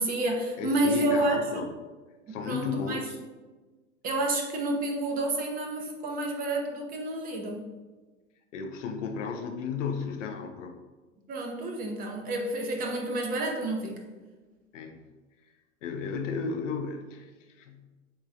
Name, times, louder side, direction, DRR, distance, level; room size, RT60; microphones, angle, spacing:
voice 1, 0.0-1.6 2.3-3.0 4.0-7.7 11.3-14.0, right 1 dB, 25° right, 2 dB, 0.5 m, -29 dB
voice 2, 0.6-1.7 2.3-3.2 8.5-10.8 14.7-15.0 15.8-17.8, left 5 dB, 75° left, 5 dB, 0.6 m, -34 dB
3.8 x 3.1 x 2.5 m, 1.3 s
hypercardioid pair, 100°, 38 cm